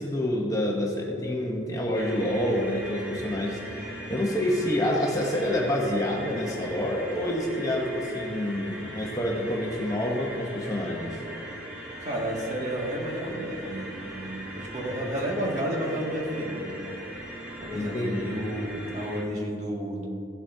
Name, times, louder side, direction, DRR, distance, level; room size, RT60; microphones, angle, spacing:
voice 1, 0.0-11.2 17.7-18.3, left 1 dB, 15° left, -2 dB, 0.9 m, -28 dB
sound 1, 1.9-19.2, equal, 10° right, 1.6 m, -40 dB
voice 2, 12.0-16.9 17.6-20.1, equal, 35° right, -3 dB, 1.9 m, -31 dB
16.5 x 8.0 x 2.7 m, 2.7 s
head